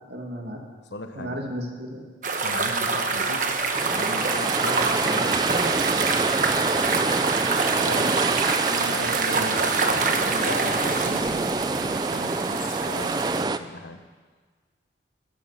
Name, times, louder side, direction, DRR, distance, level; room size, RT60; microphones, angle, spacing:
voice 1, 0.1-0.6 1.1-2.1 8.8-9.7, equal, 65° right, 1 dB, 2.3 m, -34 dB
voice 2, 0.9-1.4 2.4-3.5 3.8-5.8 7.8-8.2 8.6-14.0, left 2 dB, 80° left, 8 dB, 1.1 m, -37 dB
sound 1, 2.2-13.4, right 4 dB, 45° right, 1.2 m, -26 dB
sound 2, 3.7-13.6, right 3 dB, 25° right, 0.3 m, -26 dB
13.5 x 12.5 x 5.8 m, 1.5 s
head